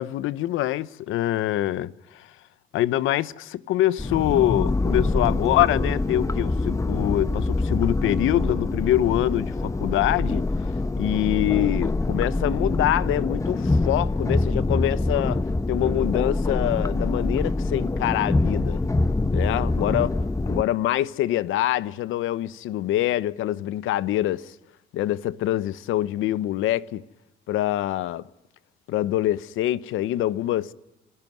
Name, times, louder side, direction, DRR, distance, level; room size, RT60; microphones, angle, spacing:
voice 1, 0.0-2.3 2.7-10.5 11.0-18.8 19.3-20.2 20.5-24.5 24.9-27.0 27.5-28.3 28.9-30.7, left 14 dB, 85° left, 0.9 m, -25 dB
sound 1, 4.0-20.6, left 2 dB, 15° left, 1.0 m, -25 dB
27.0 x 17.0 x 9.2 m
cardioid pair, 90°, 20 cm